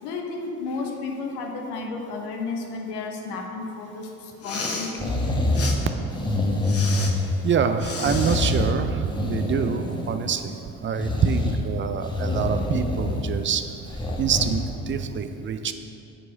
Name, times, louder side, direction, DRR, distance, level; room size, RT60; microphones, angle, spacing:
voice 1, 0.0-5.4, left 3 dB, 60° left, 2 dB, 1.2 m, -33 dB
Respiratory sounds, 4.3-4.9 5.5-5.8 6.6-7.1 7.8-8.5, left 4 dB, 30° left, 1.1 m, -32 dB
sound 1, 5.0-5.8 6.1-7.5 8.0-8.7 9.0-10.4 10.9-11.6 12.0-13.4 13.9-14.6 15.0-15.1, left 1 dB, 10° left, 1.1 m, -25 dB
voice 2, 7.4-10.6 10.8-13.7 14.2-15.7, right 6 dB, 25° right, 8 dB, 0.5 m, -26 dB
8.7 x 4.7 x 5.2 m, 2.7 s
figure-of-eight pair, 55°, 45 cm